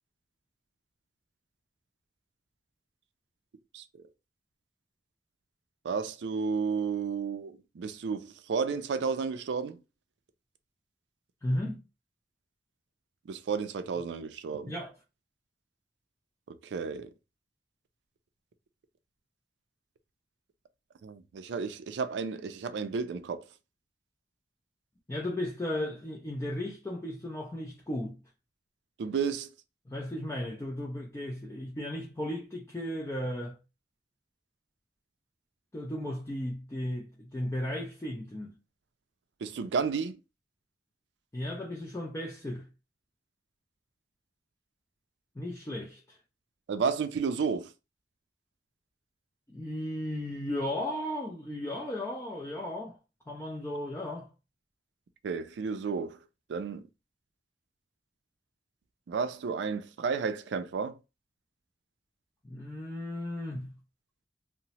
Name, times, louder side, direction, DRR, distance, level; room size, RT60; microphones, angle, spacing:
voice 1, 5.8-9.8 13.3-14.7 16.5-17.1 21.0-23.5 29.0-29.5 39.4-40.2 46.7-47.7 55.2-56.2 56.5-56.9 59.1-61.0, right 5 dB, 80° right, 0.4 m, -32 dB
voice 2, 11.4-11.8 14.7-14.9 25.1-28.2 29.9-33.6 35.7-38.5 41.3-42.7 45.4-46.2 49.5-53.0 53.3-54.3 62.4-63.7, left 1 dB, 15° left, 0.4 m, -35 dB
2.8 x 2.0 x 2.8 m
head